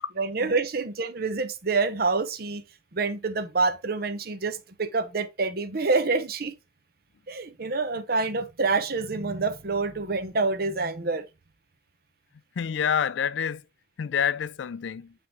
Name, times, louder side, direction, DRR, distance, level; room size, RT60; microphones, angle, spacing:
voice 1, 0.2-2.6 2.9-6.5 7.3-11.3, right 3 dB, 55° right, 0.8 m, -27 dB
voice 2, 12.6-13.6 14.0-15.1, left 8 dB, 85° left, 0.4 m, -27 dB
8.5 x 3.6 x 3.0 m
head